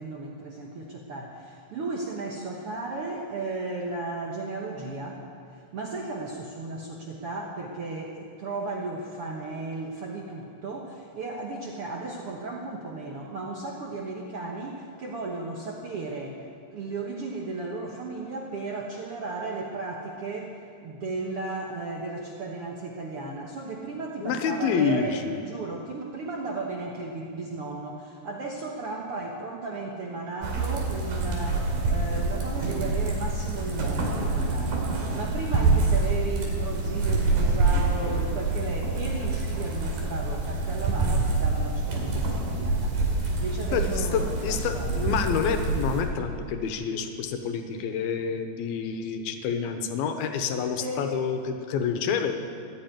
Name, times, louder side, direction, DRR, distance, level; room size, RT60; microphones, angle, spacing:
voice 1, 0.0-5.2 5.5-16.4 16.7-43.0 43.4-45.1 45.9-46.0 50.8-51.2, right 3 dB, 85° right, -1 dB, 1.2 m, -35 dB
voice 2, 24.2-25.4 43.7-52.4, left 6 dB, 80° left, 7 dB, 2.8 m, -28 dB
sound 1, 30.4-46.0, right 3 dB, 65° right, 4.0 m, -26 dB
15.0 x 11.0 x 9.0 m, 2.3 s
omnidirectional pair, 4.5 m